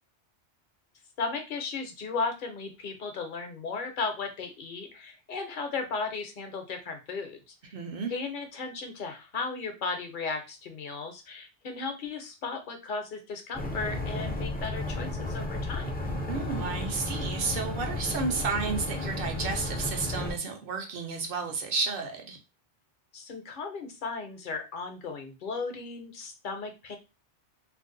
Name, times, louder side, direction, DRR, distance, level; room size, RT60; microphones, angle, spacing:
voice 1, 1.2-7.7 8.1-16.0 23.1-27.0, left 4 dB, 55° left, 0.8 m, -35 dB
voice 2, 7.7-8.1 16.3-22.4, right 4 dB, 60° right, 0.8 m, -32 dB
sound 1, 13.5-20.3, left 2 dB, 15° left, 0.4 m, -33 dB
2.5 x 2.1 x 3.7 m
omnidirectional pair, 1.2 m